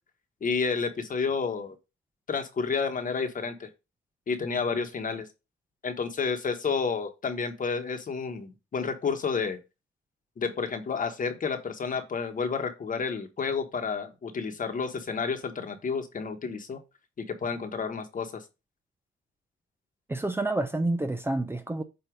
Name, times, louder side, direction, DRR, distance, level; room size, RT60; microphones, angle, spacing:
voice 1, 0.4-1.8 2.3-3.7 4.3-5.3 5.8-9.6 10.4-16.8 17.2-18.4, left 5 dB, 40° left, 1.3 m, -30 dB
voice 2, 20.1-21.8, right 2 dB, 10° right, 0.6 m, -28 dB
7.9 x 2.8 x 5.1 m
cardioid pair, 90°, 20 cm